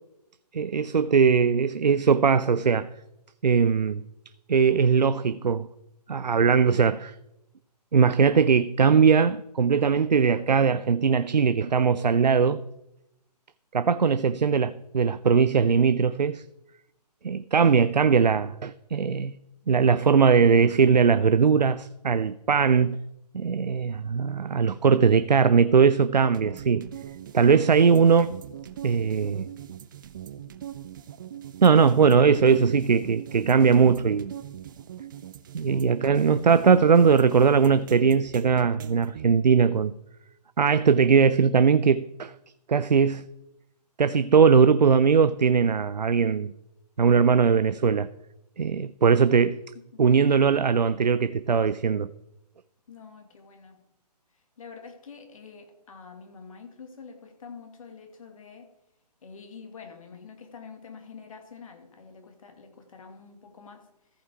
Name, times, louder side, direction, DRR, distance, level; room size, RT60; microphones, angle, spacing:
voice 1, 0.5-2.9 3.4-4.0 4.5-5.7 6.1-7.1 7.9-12.6 13.7-16.4 17.2-19.3 19.7-23.0 23.3-26.9 27.3-28.3 28.8-29.5 31.6-34.3 35.5-39.9 40.6-42.3 42.7-43.2 44.0-46.5 47.0-48.1 48.6-49.6 50.0-52.1, right 6 dB, 90° right, 0.4 m, -20 dB
sound 1, 26.3-39.3, right 10 dB, 30° right, 0.4 m, -41 dB
voice 2, 52.9-53.8 54.6-58.7 59.2-63.9, left 5 dB, 55° left, 1.8 m, -46 dB
14.5 x 5.5 x 4.8 m
figure-of-eight pair, 135°, 21 cm